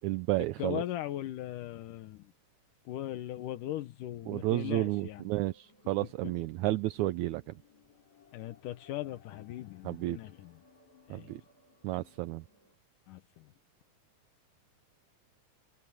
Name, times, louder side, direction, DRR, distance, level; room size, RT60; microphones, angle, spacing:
voice 1, 0.0-0.8 4.3-7.4 9.9-10.2 11.1-11.4 11.8-12.4, right 18 dB, 80° right, 1.9 m, -31 dB
voice 2, 0.6-2.3 2.9-5.2 8.3-10.5 11.1-11.4 13.1-13.4, left 13 dB, 80° left, 2.6 m, -39 dB
sound 1, 4.7-12.7, left 4 dB, 60° left, 7.3 m, -62 dB
omnidirectional pair, 3.7 m